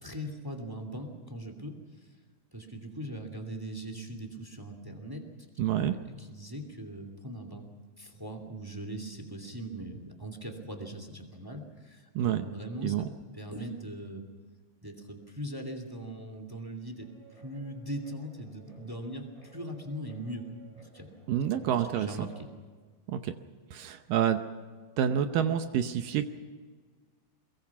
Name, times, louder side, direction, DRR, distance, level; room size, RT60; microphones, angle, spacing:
voice 1, 0.0-1.8 2.0-2.1 2.5-5.2 5.8-7.7 8.0-13.1 13.3-14.3 14.8-20.4 20.7-21.1 21.5-22.5, right 1 dB, 10° right, 4 dB, 1.2 m, -40 dB
voice 2, 5.6-5.9 12.2-12.5 12.8-13.1 21.3-22.3 23.1-23.3 23.7-24.4 25.0-26.3, right 9 dB, 75° right, 8 dB, 2.2 m, -28 dB
Guitar, 17.0-22.4, right 3 dB, 10° left, 6.8 m, -57 dB
23.0 x 22.5 x 6.0 m, 1.5 s
omnidirectional pair, 4.6 m